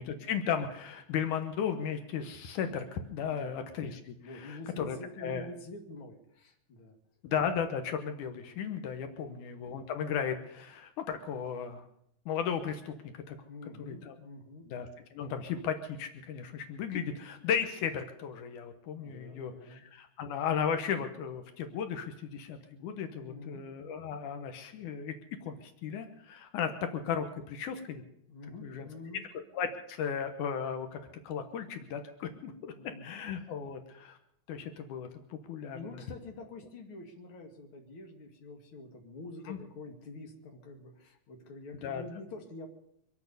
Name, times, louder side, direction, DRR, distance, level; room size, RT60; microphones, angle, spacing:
voice 1, 0.0-5.5 7.2-11.8 12.3-13.4 13.8-14.2 14.7-25.2 25.4-28.0 28.6-28.9 29.5-31.0 31.2-32.7 33.0-34.2 34.5-36.0 39.5-39.6 41.8-42.0, left 7 dB, 85° left, 7 dB, 2.6 m, -35 dB
voice 2, 4.2-6.9 9.1-9.4 13.5-14.7 17.0-17.1 19.0-19.8 23.2-23.6 28.3-29.3 32.7-33.1 35.7-42.7, left 2 dB, 45° left, 2 dB, 2.8 m, -47 dB
24.0 x 8.5 x 6.8 m, 0.73 s
omnidirectional pair, 3.5 m